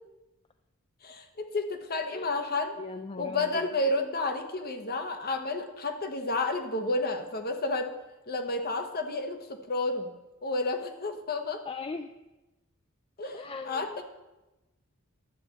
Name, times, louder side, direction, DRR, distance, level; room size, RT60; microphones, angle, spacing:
voice 1, 1.0-2.7 3.2-7.9 8.3-10.1 10.4-11.6 13.2-14.0, left 2 dB, 45° left, 6 dB, 1.1 m, -31 dB
voice 2, 2.8-3.7 11.6-12.1 13.3-14.0, left 3 dB, 25° left, 8 dB, 0.4 m, -39 dB
11.5 x 4.4 x 8.0 m, 1.0 s
head